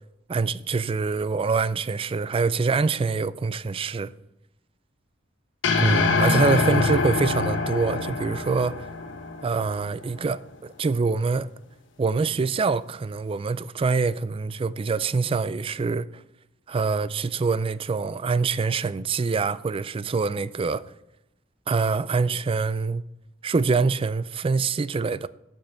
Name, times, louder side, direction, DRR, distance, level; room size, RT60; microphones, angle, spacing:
voice 1, 0.3-4.1 5.8-8.9 9.4-11.5 12.0-16.2 16.7-20.9 21.7-23.0 23.4-25.3, right 4 dB, 30° right, 0.3 m, -25 dB
sound 1, 5.6-10.0, left 4 dB, 70° left, 1.2 m, -24 dB
12.0 x 5.4 x 5.6 m
head